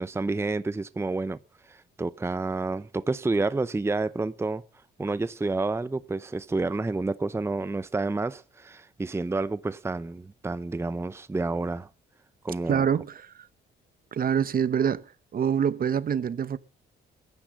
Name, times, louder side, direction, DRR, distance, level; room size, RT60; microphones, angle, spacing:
voice 1, 0.0-1.4 1.6-4.6 5.0-11.9 12.4-12.9, right 3 dB, 15° right, 0.7 m, -29 dB
voice 2, 12.7-13.3 14.1-15.0 15.3-16.6, right 8 dB, 45° right, 0.9 m, -25 dB
14.5 x 10.0 x 7.4 m
cardioid pair, 90°, 20 cm